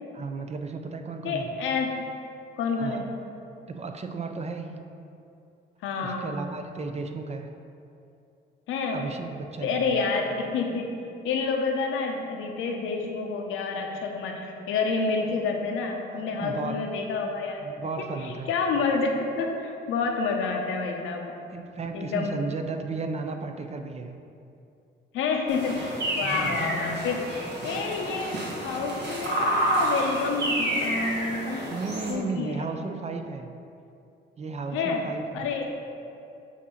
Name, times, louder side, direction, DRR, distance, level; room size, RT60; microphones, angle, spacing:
voice 1, 0.1-1.5 2.8-3.1 3.7-4.8 6.0-7.5 8.9-10.0 16.1-16.8 17.6-18.5 21.5-24.1 26.2-26.6 31.6-33.5 34.4-35.5, right 4 dB, 35° right, 6 dB, 0.5 m, -34 dB
voice 2, 1.2-2.1 2.6-3.1 5.8-6.3 8.7-9.1 9.6-17.6 18.2-21.4 21.9-22.4 25.1-27.3 27.6-31.7 32.1-32.7 34.7-35.1 35.3-35.7, left 4 dB, 90° left, 2 dB, 0.8 m, -29 dB
sound 1, 25.5-32.1, right 1 dB, 60° right, 1.4 m, -29 dB
7.3 x 2.8 x 5.6 m, 2.7 s
cardioid pair, 90°, 20 cm